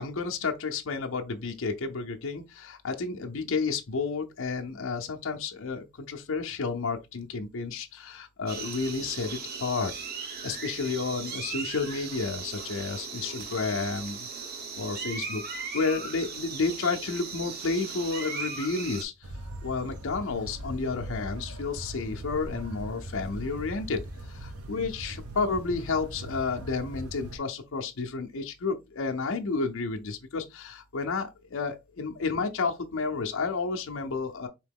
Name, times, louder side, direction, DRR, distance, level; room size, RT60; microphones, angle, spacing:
voice 1, 0.0-9.9 10.4-14.3 14.5-19.3 19.6-34.5, left 4 dB, 65° left, 0.6 m, -31 dB
sound 1, 8.5-19.0, right 5 dB, 45° right, 0.9 m, -38 dB
sound 2, 19.2-27.4, right 1 dB, 85° right, 0.9 m, -40 dB
4.5 x 2.9 x 3.5 m
head